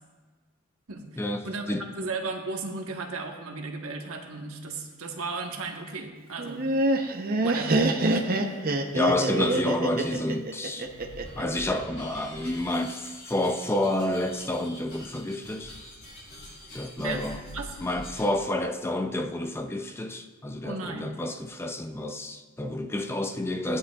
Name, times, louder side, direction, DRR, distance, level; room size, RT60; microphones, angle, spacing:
voice 1, 1.2-1.9 8.9-10.9 11.4-15.8 16.7-17.4 17.8-23.8, left 1 dB, 10° left, 0.4 m, -29 dB
voice 2, 2.0-6.7 7.4-7.8 8.1-8.8 17.0-17.2 17.5-17.7 20.6-21.2, right 3 dB, 75° right, 1.2 m, -35 dB
Laughter, 6.4-11.4, right 2 dB, 45° right, 0.7 m, -26 dB
sound 1, 10.8-18.4, left 1 dB, 60° left, 3.6 m, -45 dB
16.0 x 9.8 x 2.4 m
head